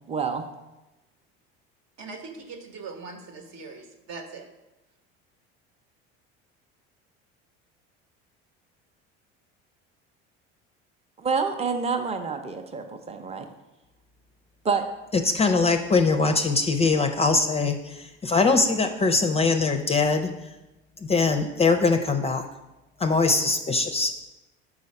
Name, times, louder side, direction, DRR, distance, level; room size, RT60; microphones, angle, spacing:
voice 1, 0.1-0.4 11.2-13.5 14.6-14.8, right 5 dB, 20° right, 6 dB, 0.7 m, -27 dB
voice 2, 2.0-4.5, right 4 dB, 55° right, 6 dB, 1.1 m, -41 dB
voice 3, 15.1-20.3 21.0-22.5 23.0-24.1, left 4 dB, 20° left, 6 dB, 0.5 m, -22 dB
5.6 x 4.8 x 5.3 m, 0.99 s
supercardioid pair, 90°, 30 cm